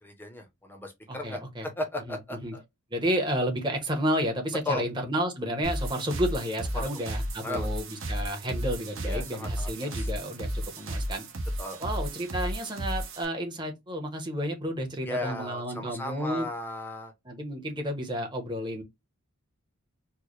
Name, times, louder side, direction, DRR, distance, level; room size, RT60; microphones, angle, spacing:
voice 1, 0.0-2.6 4.7-4.8 6.7-6.9 7.4-7.7 9.1-9.7 10.0-10.1 11.6-11.8 15.0-17.1, left 2 dB, 10° left, 0.6 m, -35 dB
voice 2, 1.1-1.7 2.1-2.6 2.9-11.3 11.8-16.5 17.2-18.8, equal, 20° right, 0.9 m, -31 dB
sound 1, 5.6-13.2, equal, 60° right, 1.0 m, -33 dB
4.5 x 2.1 x 3.1 m
head